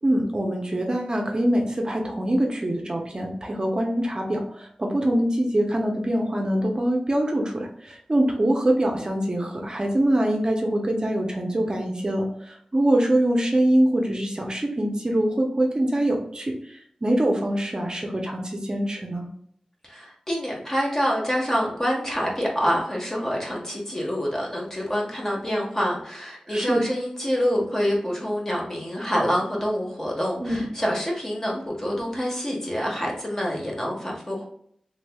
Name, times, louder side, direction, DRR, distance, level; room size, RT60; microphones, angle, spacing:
voice 1, 0.0-19.3 26.5-26.8 30.4-30.7, right 1 dB, 35° right, 1 dB, 0.6 m, -24 dB
voice 2, 19.8-34.5, equal, 20° left, -2 dB, 1.2 m, -26 dB
3.3 x 3.1 x 2.3 m, 0.66 s
wide cardioid pair, 55°, 2 cm